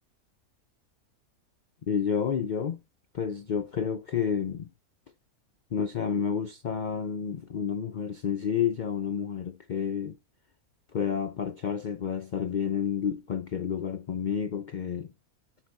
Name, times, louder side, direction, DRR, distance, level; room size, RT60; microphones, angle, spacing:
voice 1, 1.9-2.8 3.1-4.7 5.7-10.2 10.9-15.1, left 7 dB, 90° left, 0.4 m, -30 dB
8.9 x 4.6 x 3.9 m
omnidirectional pair, 1.5 m